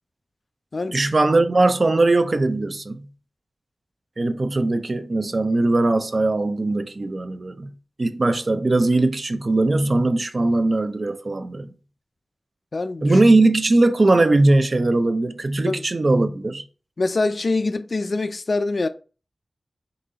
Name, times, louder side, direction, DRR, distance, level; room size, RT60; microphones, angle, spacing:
voice 1, 0.9-3.1 4.2-7.7 8.0-11.7 13.0-16.6, right 2 dB, 50° right, 0.4 m, -20 dB
voice 2, 12.7-13.2 15.7-15.8 17.0-18.9, left 3 dB, 60° left, 0.3 m, -24 dB
3.9 x 2.8 x 3.9 m
wide cardioid pair, 80°, 0 cm